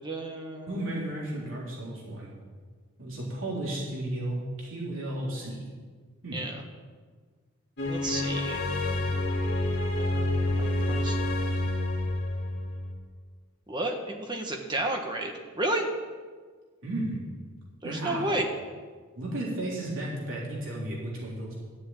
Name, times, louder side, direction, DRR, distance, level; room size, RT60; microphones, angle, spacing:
voice 1, 0.0-0.7 6.3-6.6 7.9-8.6 10.0-11.2 13.7-15.9 17.8-18.5, right 1 dB, 20° right, 2 dB, 1.4 m, -32 dB
voice 2, 0.7-2.3 3.0-5.7 6.2-6.4 16.8-17.2 17.8-18.4 19.2-21.6, right 1 dB, 60° right, -5 dB, 3.5 m, -34 dB
sound 1, 7.8-12.9, left 1 dB, 50° left, 2.5 m, -28 dB
12.5 x 7.6 x 8.8 m, 1.5 s
head